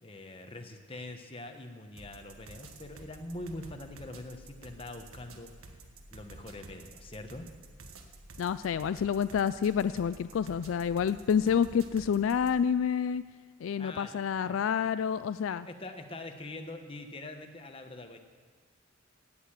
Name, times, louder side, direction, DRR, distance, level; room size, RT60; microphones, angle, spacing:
voice 1, 0.0-5.5 6.1-7.5 13.8-14.6 15.6-18.2, left 2 dB, 25° left, 5 dB, 1.2 m, -44 dB
sound 1, 2.0-12.6, right 2 dB, 90° right, 1.5 m, -51 dB
voice 2, 8.4-13.2 13.6-15.7, left 7 dB, 70° left, 14 dB, 0.3 m, -28 dB
17.0 x 6.7 x 8.8 m, 1.5 s
head